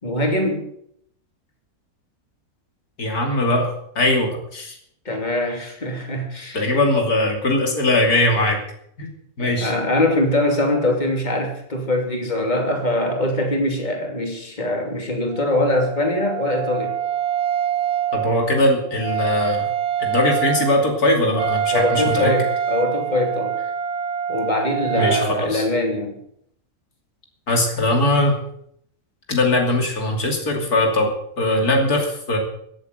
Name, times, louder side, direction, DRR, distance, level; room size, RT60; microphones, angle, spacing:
voice 1, 0.0-0.6 5.0-6.6 9.4-17.0 21.7-23.6 24.3-26.1, left 1 dB, 30° left, 2 dB, 3.0 m, -22 dB
voice 2, 3.0-4.8 6.5-8.6 9.0-9.1 9.4-9.7 18.1-19.7 20.0-22.3 25.0-25.6 27.5-28.4 29.3-32.4, left 1 dB, 90° left, 2 dB, 3.3 m, -20 dB
Wind instrument woodwind instrument, 15.3-25.3, right 9 dB, 50° right, 1.1 m, -25 dB
16.0 x 8.3 x 8.0 m, 0.70 s
omnidirectional pair, 1.5 m